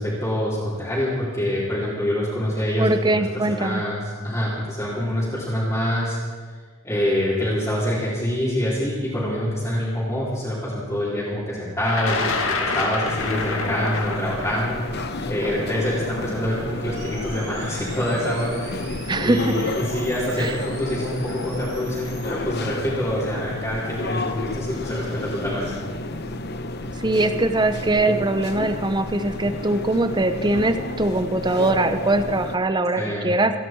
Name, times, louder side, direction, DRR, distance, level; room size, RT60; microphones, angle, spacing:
voice 1, 0.0-6.2 6.8-14.8 15.3-18.6 19.2-25.7 32.9-33.3, equal, 10° left, -12 dB, 4.0 m, -26 dB
voice 2, 2.8-3.8 19.1-19.6 20.4-20.6 27.0-33.5, right 2 dB, 20° right, 9 dB, 0.7 m, -22 dB
Thunder, 11.9-17.9 18.8-18.9 20.0-20.3 20.6-21.1, left 3 dB, 70° left, 2.0 m, -29 dB
sound 1, 13.1-32.6, left 2 dB, 45° left, 0.9 m, -31 dB
sound 2, 16.9-22.3, right 4 dB, 45° right, 3.7 m, -43 dB
28.0 x 11.0 x 4.6 m, 1.5 s
head